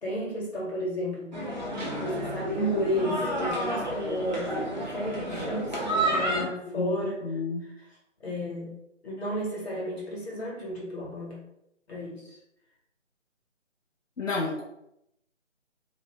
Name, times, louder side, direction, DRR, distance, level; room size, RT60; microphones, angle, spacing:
voice 1, 0.0-1.4 2.0-7.2 8.2-8.7 9.0-11.4 11.9-12.2, equal, 55° left, -3 dB, 1.1 m, -32 dB
sound 1, 1.3-6.4, right 1 dB, 40° right, 0.4 m, -30 dB
Guitar, 1.8-2.9, right 4 dB, 85° right, 0.7 m, -41 dB
voice 2, 6.4-7.7 14.2-14.6, left 3 dB, 90° left, -3 dB, 0.6 m, -32 dB
2.5 x 2.0 x 3.1 m, 0.81 s
figure-of-eight pair, 155°, 38 cm